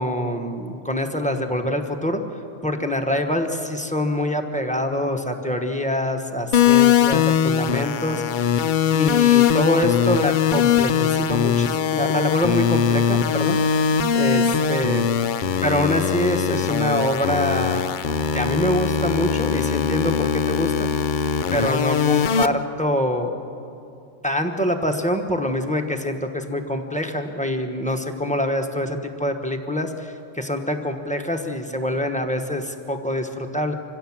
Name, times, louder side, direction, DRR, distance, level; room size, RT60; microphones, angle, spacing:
voice 1, 0.0-2.2 2.6-8.5 8.9-13.6 14.1-15.1 15.6-17.9 18.3-21.0 21.5-23.4 24.2-33.7, left 1 dB, 5° left, 4 dB, 1.2 m, -25 dB
sound 1, 6.5-22.5, left 8 dB, 50° left, 0.6 m, -21 dB
26.0 x 16.0 x 7.3 m, 2.6 s
omnidirectional pair, 1.3 m